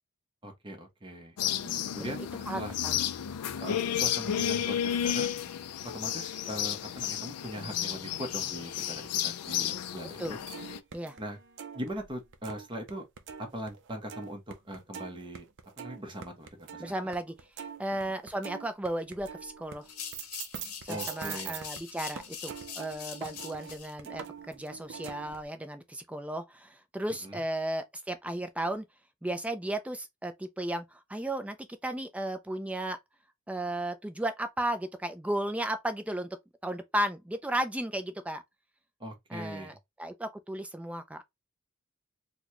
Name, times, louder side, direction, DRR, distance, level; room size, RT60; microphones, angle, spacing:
voice 1, 0.4-1.4 1.9-2.2 2.5-2.7 3.6-5.3 5.8-10.4 11.2-11.4 11.7-13.0 13.4-15.4 15.8-16.9 20.9-21.6 27.2-27.4 39.0-39.7, equal, 20° right, 0.9 m, -40 dB
sound 1, 1.4-10.8, left 10 dB, 90° left, 0.4 m, -32 dB
voice 2, 1.6-3.0 10.2-10.4 10.9-11.2 16.8-17.3 17.8-19.9 20.8-28.9 29.2-33.0 33.5-36.4 36.6-38.4 39.3-41.2, right 1 dB, 5° right, 0.4 m, -35 dB
sound 2, 10.2-12.9 13.2-21.8 22.2-25.5, right 7 dB, 55° right, 0.5 m, -44 dB
sound 3, 19.8-23.9, left 7 dB, 70° left, 0.8 m, -43 dB
4.0 x 2.2 x 2.9 m
head